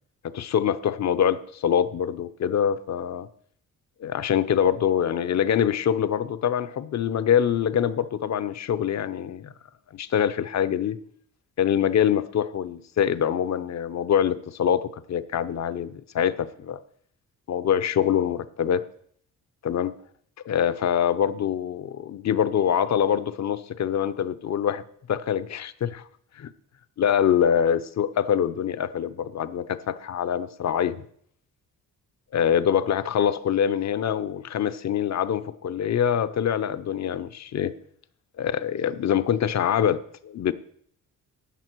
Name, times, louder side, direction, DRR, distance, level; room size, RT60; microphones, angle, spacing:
voice 1, 0.2-3.3 4.0-9.5 9.9-11.0 11.6-16.8 17.5-18.8 19.6-20.0 20.4-24.8 25.1-26.0 26.4-26.5 27.0-31.0 32.3-37.7 38.4-40.5, left 9 dB, 50° left, 14 dB, 0.7 m, -24 dB
13.0 x 8.4 x 4.6 m, 0.64 s
cardioid pair, 100°, 34 cm